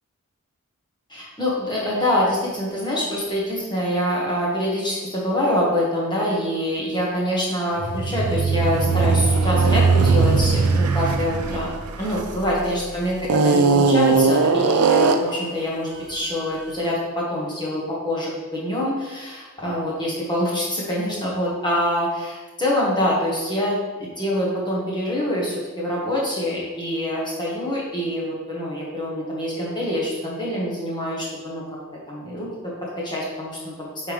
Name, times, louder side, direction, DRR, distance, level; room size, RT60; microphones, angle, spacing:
voice 1, 1.1-11.7 12.0-23.8 24.2-31.6 32.1-34.1, left 1 dB, 20° left, -5 dB, 1.4 m, -25 dB
sound 1, 7.8-12.6 13.2-15.4, right 4 dB, 85° right, 0.6 m, -19 dB
9.0 x 4.8 x 3.4 m, 1.2 s
head